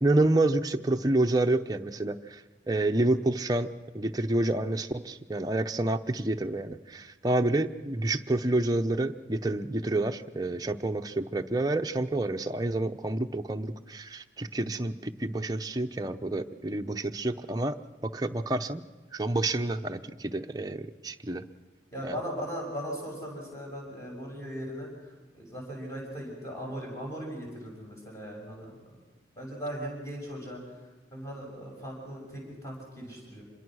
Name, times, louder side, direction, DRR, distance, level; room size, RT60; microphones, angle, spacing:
voice 1, 0.0-3.7 3.9-17.8 18.0-18.8 19.1-21.4 22.0-22.2, right 2 dB, 20° right, 5 dB, 0.7 m, -28 dB
voice 2, 21.9-29.0 29.3-30.6 31.1-33.4, equal, 15° left, -2 dB, 6.8 m, -38 dB
26.0 x 22.0 x 6.3 m, 1.2 s
head